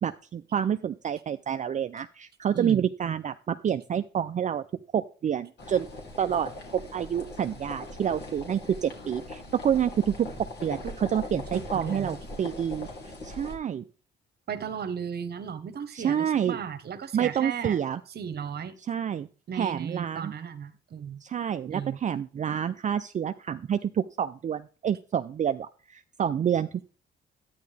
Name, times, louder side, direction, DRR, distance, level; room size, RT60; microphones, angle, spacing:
voice 1, 0.0-4.6 4.9-5.9 6.2-10.3 10.6-12.9 13.2-13.8 15.9-16.6 17.1-18.0 18.9-19.3 19.5-20.3 21.2-26.9, right 9 dB, 40° right, 0.4 m, -28 dB
voice 2, 2.5-2.9 10.8-11.0 11.5-12.1 14.5-17.8 18.1-18.8 19.5-21.2 21.7-22.0, right 7 dB, 55° right, 1.1 m, -35 dB
sound 1, 5.6-13.5, left 1 dB, 55° left, 2.8 m, -40 dB
11.5 x 9.4 x 3.3 m
cardioid pair, 90°, 20 cm